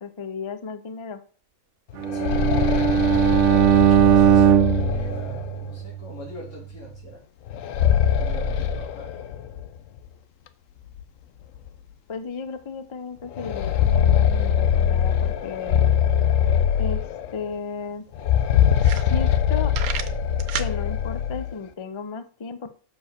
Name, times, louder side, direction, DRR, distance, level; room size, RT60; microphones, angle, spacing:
voice 1, 0.0-1.2 12.1-15.9 16.8-17.0 17.3-18.0 18.9-19.7 20.5-22.7, left 5 dB, 40° left, 10 dB, 0.4 m, -34 dB
sound 1, 1.9-5.7 7.5-9.7 10.0-10.1 11.0-11.1 11.6-11.7 13.3-17.5 18.1-21.5, left 8 dB, 70° left, 1.0 m, -22 dB
Bowed string instrument, 2.0-6.2, right 9 dB, 70° right, 0.9 m, -19 dB
voice 2, 2.1-3.4 3.7-7.2 8.0-9.2 14.4-14.5, left 1 dB, 90° left, -3 dB, 3.7 m, -42 dB
sound 2, 17.4-17.5 17.8-17.9 18.4-18.5 18.7-19.4 19.7-20.7, right 9 dB, 85° right, 1.2 m, -31 dB
6.2 x 4.7 x 6.7 m, 0.42 s
omnidirectional pair, 1.5 m